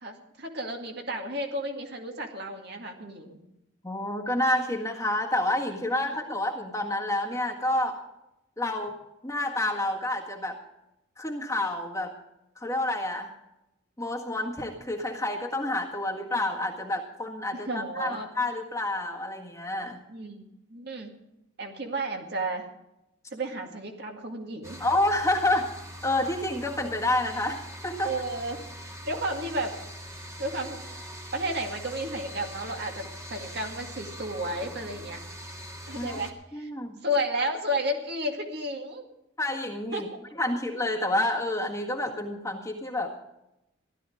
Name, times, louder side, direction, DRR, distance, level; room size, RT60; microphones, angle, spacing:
voice 1, 0.0-3.4 17.5-18.3 20.1-20.4 20.7-21.1 21.6-22.7 23.3-24.8 28.0-28.6 29.0-29.8 30.4-30.8 31.3-35.2 35.9-36.7 37.0-39.0 39.9-40.1, right 1 dB, 50° right, 3 dB, 2.1 m, -32 dB
voice 2, 3.8-8.0 8.6-9.0 9.2-10.6 11.2-12.1 12.6-13.3 14.0-20.0 24.8-25.7 26.0-28.1 35.9-36.2 36.5-36.9 39.4-40.1 40.4-43.1, left 1 dB, 15° left, 0 dB, 1.7 m, -29 dB
sound 1, 24.6-36.3, equal, 15° right, 1.7 m, -42 dB
16.0 x 12.5 x 5.0 m, 0.88 s
head